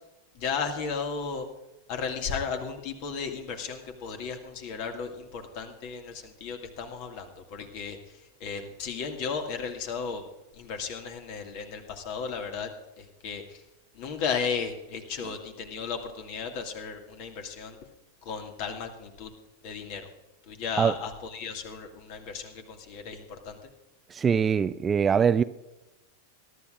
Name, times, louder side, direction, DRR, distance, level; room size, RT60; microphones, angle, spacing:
voice 1, 0.4-1.4 1.9-8.0 8.4-10.2 10.6-12.7 13.0-13.6 14.0-17.8 18.3-19.3 19.6-20.0 20.5-23.6, left 5 dB, 45° left, 2.0 m, -34 dB
voice 2, 24.1-25.4, right 7 dB, 20° right, 0.4 m, -23 dB
22.5 x 12.5 x 2.5 m
figure-of-eight pair, 90°, 0 cm